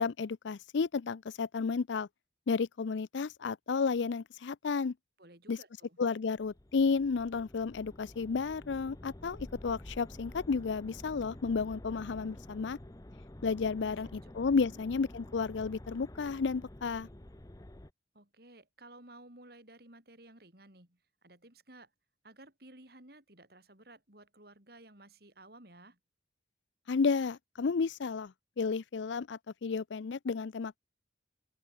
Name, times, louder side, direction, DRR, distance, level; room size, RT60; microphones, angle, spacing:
voice 1, 0.0-2.1 2.5-4.9 5.5-5.6 6.0-12.8 13.4-17.1 26.9-30.8, left 5 dB, 75° left, 0.5 m, -32 dB
voice 2, 5.2-6.0 13.9-14.3 14.7-14.8 18.1-21.9 22.2-26.0, right 2 dB, 55° right, 4.9 m, -55 dB
sound 1, 6.4-17.9, left 1 dB, 20° left, 0.8 m, -49 dB
open air
head